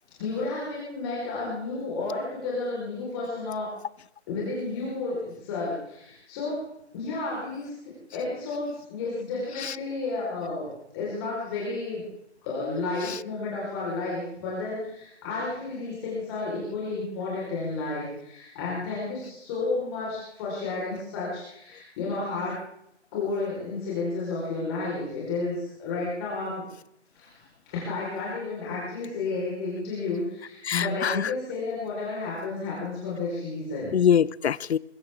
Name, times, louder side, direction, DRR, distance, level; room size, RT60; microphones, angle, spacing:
voice 1, 0.2-3.7 4.3-6.6 6.9-10.7 10.9-12.0 12.4-22.6 23.1-26.7 27.1-27.4 27.7-34.0, left 3 dB, 20° left, 4.4 m, -32 dB
voice 2, 30.6-31.3 33.9-34.8, left 8 dB, 65° left, 0.6 m, -24 dB
21.5 x 16.0 x 3.6 m
figure-of-eight pair, 155°, 35 cm